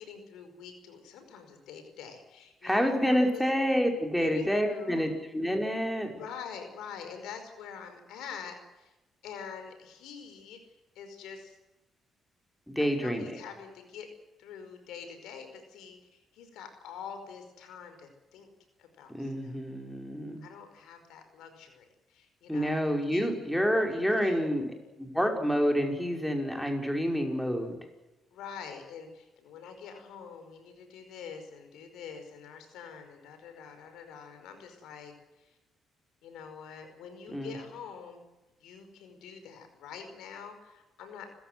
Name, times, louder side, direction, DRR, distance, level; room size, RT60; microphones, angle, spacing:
voice 1, 0.0-3.4 4.2-5.1 6.0-8.9 9.2-10.6 10.9-11.6 12.8-14.1 14.4-18.5 18.8-19.5 20.4-23.3 23.9-24.6 28.3-35.1 35.4-35.6 36.2-38.2 38.6-41.3, left 7 dB, 90° left, 7 dB, 5.1 m, -45 dB
voice 2, 2.6-6.1 12.7-13.4 19.1-20.4 22.5-27.8 37.3-37.6, equal, 5° left, 3 dB, 5.5 m, -28 dB
29.5 x 15.5 x 7.9 m, 1.0 s
cardioid pair, 90°, 0 cm